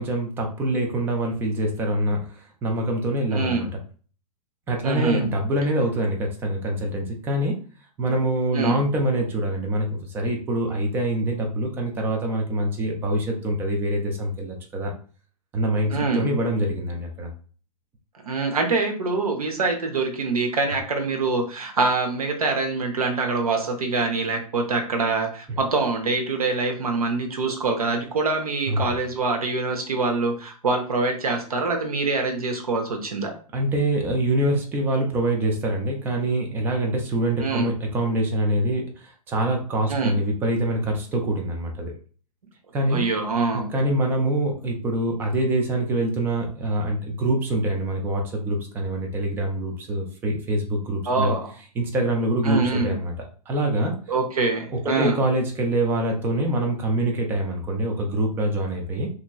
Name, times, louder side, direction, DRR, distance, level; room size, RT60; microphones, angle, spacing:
voice 1, 0.0-3.7 4.7-7.6 8.0-14.9 15.5-17.3 25.5-25.6 28.7-28.9 33.5-41.9 42.7-43.1 43.5-51.3 51.8-53.1 53.5-53.9 54.7-59.1, right 1 dB, 10° right, 1 dB, 0.3 m, -25 dB
voice 2, 3.3-3.6 4.8-5.3 8.5-8.8 15.9-16.3 18.3-33.3 37.4-37.7 39.9-40.2 42.9-43.7 51.1-51.4 52.4-52.9 54.1-55.2, right 3 dB, 65° right, 3 dB, 0.8 m, -24 dB
2.9 x 2.6 x 2.2 m, 0.41 s
figure-of-eight pair, 110°, 20 cm